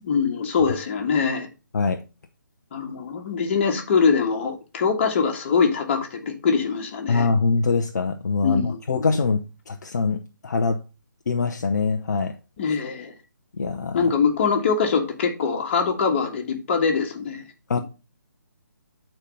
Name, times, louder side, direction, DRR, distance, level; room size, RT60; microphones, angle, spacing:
voice 1, 0.0-1.5 2.7-7.3 8.4-9.1 12.6-13.1 13.9-17.4, left 5 dB, 35° left, 1.7 m, -23 dB
voice 2, 7.1-10.8 11.3-12.3 13.6-14.1 17.7-17.8, left 4 dB, 60° left, 0.8 m, -23 dB
8.2 x 4.5 x 5.4 m
figure-of-eight pair, 145°, 10 cm